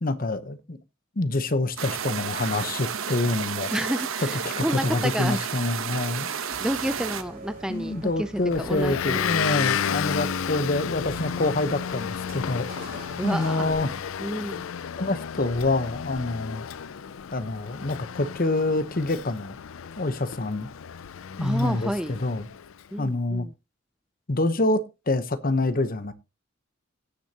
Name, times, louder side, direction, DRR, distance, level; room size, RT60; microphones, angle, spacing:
voice 1, 0.0-0.8 1.2-3.7 4.4-6.3 7.7-13.9 15.0-16.7 17.3-19.6 20.0-20.7 21.4-22.5 23.0-23.5 24.3-26.1, left 2 dB, 45° left, 0.9 m, -26 dB
sound 1, 1.8-7.2, right 7 dB, 80° right, 1.0 m, -31 dB
voice 2, 3.7-5.4 6.6-9.3 13.2-13.7 14.2-14.7 21.4-22.2 22.9-23.5, equal, 5° right, 0.5 m, -30 dB
sound 2, 6.5-13.7, right 2 dB, 45° right, 3.4 m, -45 dB
Motor vehicle (road) / Engine, 8.5-22.7, left 7 dB, 80° left, 0.5 m, -32 dB
17.0 x 6.5 x 2.9 m
head